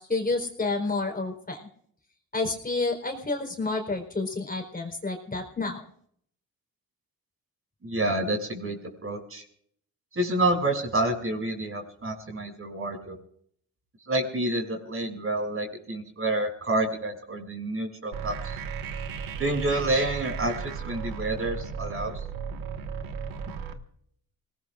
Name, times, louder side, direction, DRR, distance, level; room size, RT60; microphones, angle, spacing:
voice 1, 0.0-1.7 2.3-5.9, left 3 dB, 25° left, 2 dB, 4.2 m, -29 dB
voice 2, 7.8-9.4 10.1-13.2 14.1-18.5 19.4-22.2, right 2 dB, 40° right, 3 dB, 6.5 m, -28 dB
sound 1, 18.1-23.7, right 6 dB, 75° right, 1.7 m, -35 dB
26.0 x 19.0 x 2.5 m, 0.64 s
cardioid pair, 70°, 34 cm